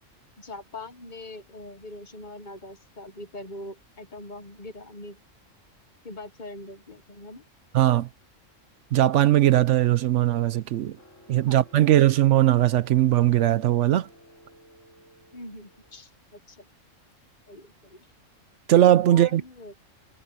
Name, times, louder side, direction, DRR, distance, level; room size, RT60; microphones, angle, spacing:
voice 1, 0.4-5.2 6.0-7.4 11.5-11.6 11.8-11.9 15.3-16.7 17.5-18.1 19.1-19.7, left 2 dB, 40° left, 1.2 m, -42 dB
voice 2, 7.7-8.1 8.9-11.0 11.3-14.1 18.7-19.4, right 13 dB, 70° right, 0.9 m, -19 dB
sound 1, 11.0-16.0, left 1 dB, 75° left, 5.5 m, -55 dB
omnidirectional pair, 1.3 m